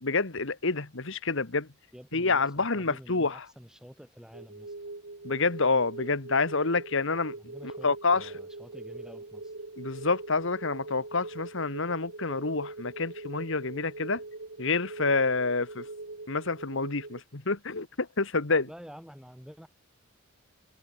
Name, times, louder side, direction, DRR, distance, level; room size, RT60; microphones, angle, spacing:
voice 1, 0.0-1.7 2.1-3.4 5.2-7.3 7.8-8.3 9.8-14.2 14.6-15.8 16.3-18.7, left 4 dB, 65° left, 1.8 m, -28 dB
voice 2, 1.9-4.9 7.3-9.5 18.7-19.7, equal, 5° right, 7.6 m, -49 dB
sound 1, 4.3-17.2, right 2 dB, 65° right, 1.9 m, -42 dB
head